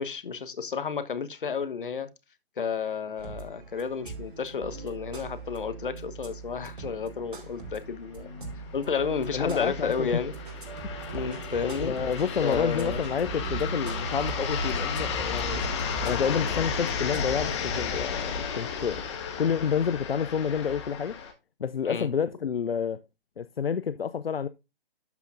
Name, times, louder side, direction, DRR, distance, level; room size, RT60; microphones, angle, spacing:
voice 1, 0.0-2.1 2.6-8.3 8.7-10.3 11.1-11.9 12.4-13.0 21.8-22.1, left 6 dB, 60° left, 1.2 m, -31 dB
sound 1, 3.2-17.5, right 5 dB, 60° right, 2.5 m, -41 dB
sound 2, 7.2-7.3 7.6-7.7 8.5-21.3, left 6 dB, 30° left, 1.5 m, -33 dB
voice 2, 9.3-10.1 11.8-15.7 16.0-19.0 19.4-21.1 21.6-23.0 23.4-24.5, left 7 dB, 75° left, 0.6 m, -29 dB
sound 3, 10.3-16.7, right 3 dB, 40° right, 3.2 m, -41 dB
12.0 x 5.6 x 2.5 m
figure-of-eight pair, 145°, 30 cm